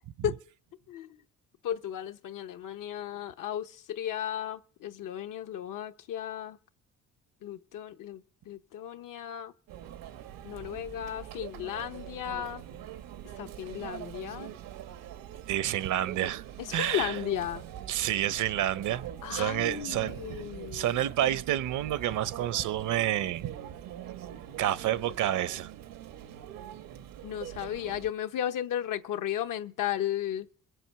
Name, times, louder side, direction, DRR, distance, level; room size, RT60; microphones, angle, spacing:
voice 1, 1.6-6.6 7.4-8.2 8.5-9.5 10.4-12.6 13.4-14.5 16.7-17.6 19.2-20.8 27.2-30.5, left 11 dB, 70° left, 1.0 m, -34 dB
Conversation / Chatter / Crowd, 9.7-28.1, right 10 dB, 90° right, 1.2 m, -43 dB
voice 2, 15.5-16.4 16.7-17.2 17.9-20.4 20.7-23.5 24.6-25.7, right 12 dB, 65° right, 0.7 m, -29 dB
22.5 x 7.8 x 5.7 m
cardioid pair, 140°, 33 cm